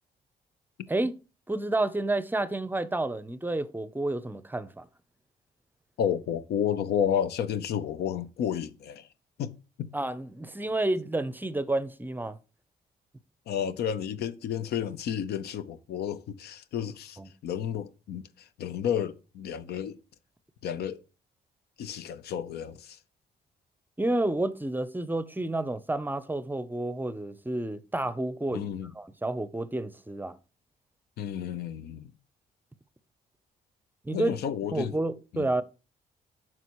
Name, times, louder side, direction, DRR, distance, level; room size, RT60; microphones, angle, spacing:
voice 1, 1.5-4.9 9.9-12.4 17.2-17.3 24.0-28.7 28.9-30.4 34.0-34.4 34.7-35.6, right 2 dB, 10° right, 0.6 m, -30 dB
voice 2, 6.0-9.1 9.4-9.5 9.8-9.9 13.5-20.0 20.6-21.0 21.8-23.0 28.5-28.9 31.2-32.1 34.1-34.9 35.3-35.5, left 9 dB, 80° left, 0.7 m, -31 dB
9.2 x 6.0 x 3.0 m
cardioid pair, 85°, 17 cm